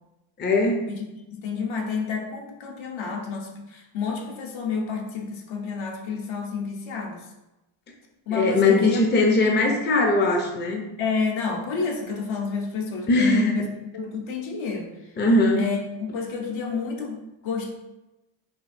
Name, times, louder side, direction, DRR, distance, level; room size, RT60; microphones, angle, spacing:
voice 1, 0.4-0.8 8.3-10.8 13.1-13.5 15.2-15.6, left 2 dB, 20° left, 1 dB, 0.5 m, -20 dB
voice 2, 1.4-7.3 8.3-9.2 9.6-9.8 11.0-13.7 13.9-14.9 15.6-15.8 16.1-17.7, left 5 dB, 70° left, 1 dB, 0.9 m, -29 dB
5.0 x 2.5 x 2.6 m, 0.97 s
cardioid pair, 95°, 50 cm